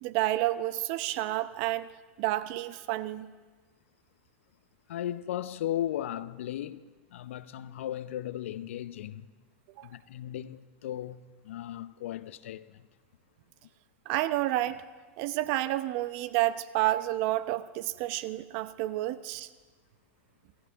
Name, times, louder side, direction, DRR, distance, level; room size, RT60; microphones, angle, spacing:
voice 1, 0.0-1.9 2.2-3.3 9.8-9.9 14.1-14.8 15.2-19.5, right 15 dB, 55° right, 0.8 m, -30 dB
voice 2, 4.9-9.3 9.8-12.9, left 12 dB, 75° left, 0.7 m, -36 dB
27.5 x 14.5 x 3.5 m
hypercardioid pair, 105°, 7 cm